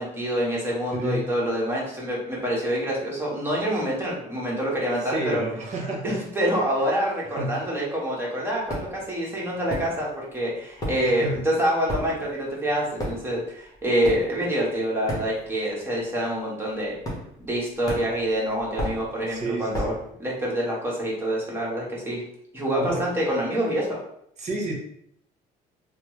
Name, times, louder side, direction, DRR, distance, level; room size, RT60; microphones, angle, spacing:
voice 1, 0.0-5.4 6.0-16.9 17.4-19.9 20.2-22.2 22.5-24.0, equal, 15° right, -5 dB, 1.2 m, -26 dB
voice 2, 5.0-6.2 7.4-7.6 11.0-11.5 19.3-20.0 22.8-23.0 24.4-24.7, right 2 dB, 45° right, -1 dB, 1.0 m, -30 dB
sound 1, 8.7-9.1 9.7-10.3 10.6-15.7 16.0-16.3 17.0-17.6 17.9-20.1, equal, 20° left, 1.0 m, -33 dB
3.1 x 2.0 x 3.1 m, 0.69 s
cardioid pair, 110°, 17 cm